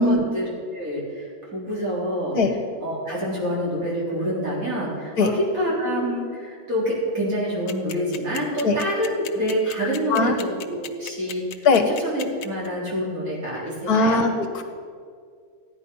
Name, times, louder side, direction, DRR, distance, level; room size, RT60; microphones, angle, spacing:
voice 1, 0.0-2.4 2.8-14.2, equal, 50° right, -6 dB, 4.2 m, -27 dB
sound 1, 7.7-12.7, left 9 dB, 85° left, 1.4 m, -35 dB
voice 2, 9.8-10.3 11.6-11.8 13.9-14.6, left 3 dB, 65° left, 5 dB, 1.7 m, -20 dB
14.5 x 10.5 x 5.5 m, 2.1 s
omnidirectional pair, 1.8 m